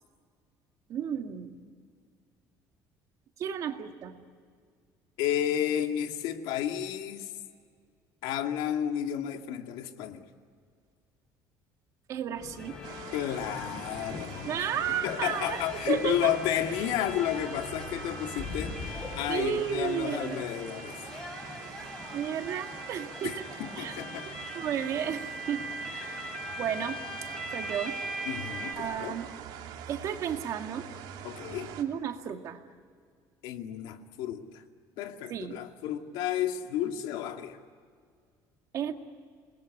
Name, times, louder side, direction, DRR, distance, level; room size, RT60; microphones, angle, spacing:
voice 1, 0.9-1.7 3.4-4.2 12.1-12.8 14.4-16.3 19.3-20.4 22.1-23.4 23.8-24.0 24.3-25.7 25.9-27.0 27.5-28.0 28.8-29.3 29.9-30.9 31.8-32.6 35.3-35.6 38.7-38.9, right 9 dB, 45° right, 6 dB, 1.9 m, -33 dB
voice 2, 5.2-7.3 8.2-10.3 13.1-14.6 15.0-21.0 23.2-24.3 28.3-29.2 31.2-31.7 33.4-34.6 35.0-37.6, left 10 dB, 90° left, 5 dB, 2.2 m, -32 dB
sound 1, 12.3-21.8 22.7-23.8 24.1-24.3 25.2-25.3, left 4 dB, 60° left, 6.7 m, -45 dB
sound 2, 12.6-28.7, equal, 5° left, 3.2 m, -41 dB
sound 3, 12.8-31.8, right 9 dB, 80° right, 2.9 m, -45 dB
29.0 x 20.5 x 9.8 m, 2.1 s
cardioid pair, 180°, 8 cm